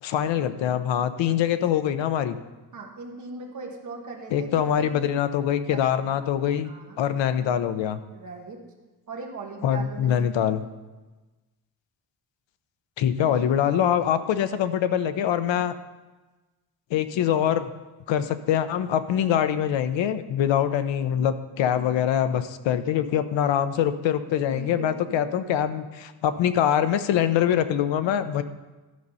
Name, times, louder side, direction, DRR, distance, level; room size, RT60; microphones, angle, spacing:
voice 1, 0.0-2.4 4.3-6.7 7.0-8.0 9.6-10.6 13.0-15.8 16.9-17.7 18.1-28.4, left 9 dB, 80° left, 11 dB, 0.7 m, -24 dB
voice 2, 2.7-5.1 5.7-6.2 6.6-7.0 8.1-8.6 9.1-10.4 13.2-14.1 24.3-25.5, right 3 dB, 40° right, 0 dB, 1.5 m, -40 dB
12.5 x 5.2 x 5.5 m, 1.2 s
wide cardioid pair, 175°, 44 cm